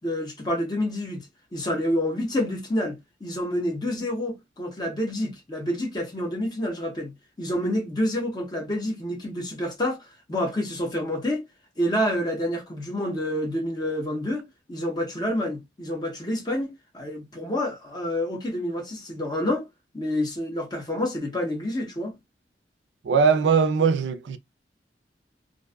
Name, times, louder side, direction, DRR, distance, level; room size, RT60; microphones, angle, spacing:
voice 1, 0.0-1.3 1.5-10.0 10.3-11.4 11.8-14.4 14.7-19.6 19.9-22.2, left 1 dB, 25° left, 0.7 m, -28 dB
voice 2, 23.0-24.4, right 5 dB, 85° right, 0.3 m, -20 dB
2.5 x 2.2 x 2.2 m
head